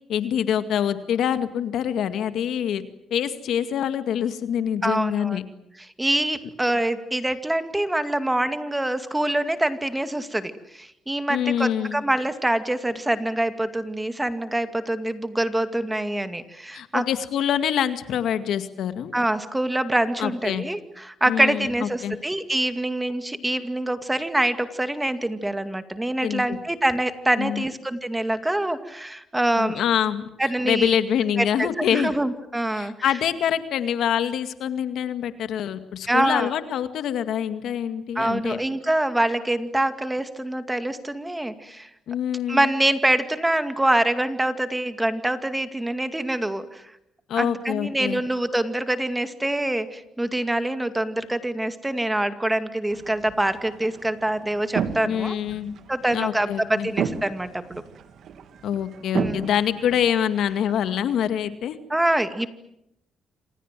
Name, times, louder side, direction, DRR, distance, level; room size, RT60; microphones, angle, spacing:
voice 1, 0.1-2.8 3.1-5.4 11.3-12.0 16.7-19.1 20.2-20.6 21.3-22.2 26.2-26.6 27.4-27.7 29.6-32.1 32.7-38.6 42.1-42.7 47.3-48.2 55.1-55.8 56.1-56.9 58.6-61.8, left 9 dB, 75° left, 10 dB, 2.1 m, -25 dB
voice 2, 4.8-5.4 5.8-17.1 19.1-29.8 30.4-31.0 31.4-32.9 36.1-36.5 38.2-41.9 42.5-46.8 47.4-55.4 55.9-57.8 59.2-59.5 61.9-62.5, right 1 dB, 10° right, 10 dB, 2.3 m, -25 dB
sound 1, 52.9-60.9, right 7 dB, 65° right, 2.5 m, -34 dB
27.5 x 27.5 x 7.6 m, 0.80 s
cardioid pair, 90°, 0 cm